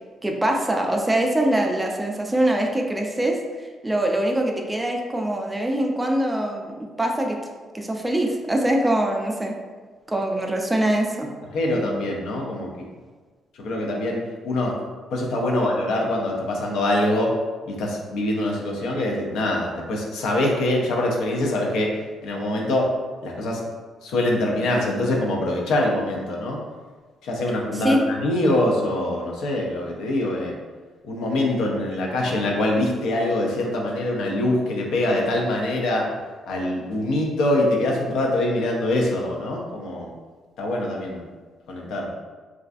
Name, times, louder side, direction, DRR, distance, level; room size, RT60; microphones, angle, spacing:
voice 1, 0.2-3.4 3.8-7.4 7.7-9.5 10.1-11.3 27.7-28.0, right 1 dB, 15° right, 1 dB, 0.3 m, -23 dB
voice 2, 11.5-12.7 13.6-14.8 15.1-17.3 17.7-21.9 22.2-22.9 23.2-23.6 24.0-26.6 27.2-30.6 31.0-36.1 36.5-40.1 40.6-41.2 41.7-42.1, left 1 dB, 80° left, -1 dB, 0.4 m, -24 dB
2.3 x 2.3 x 2.4 m, 1.4 s
cardioid pair, 90°, 0 cm